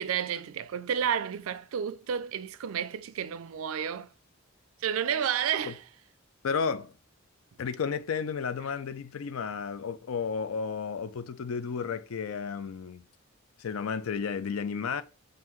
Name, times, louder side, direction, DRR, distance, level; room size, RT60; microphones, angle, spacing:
voice 1, 0.0-4.1 4.8-5.8, right 8 dB, 75° right, 0.4 m, -31 dB
voice 2, 6.4-6.9 7.6-13.1 13.6-15.0, left 6 dB, 75° left, 0.4 m, -32 dB
5.5 x 2.6 x 3.0 m
head